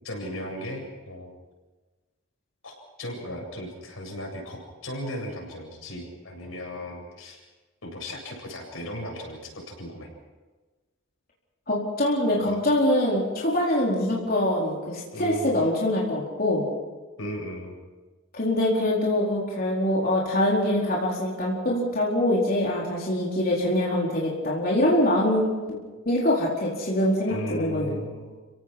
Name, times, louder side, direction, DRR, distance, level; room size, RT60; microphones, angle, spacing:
voice 1, 0.0-1.3 2.6-7.4 7.8-10.1 12.4-12.6 15.1-15.6 17.2-17.7 27.3-28.4, equal, 85° left, 1 dB, 7.9 m, -36 dB
voice 2, 11.7-16.7 18.3-25.8 26.0-28.0, left 1 dB, 45° left, -4 dB, 4.4 m, -24 dB
30.0 x 17.5 x 6.1 m, 1.3 s
head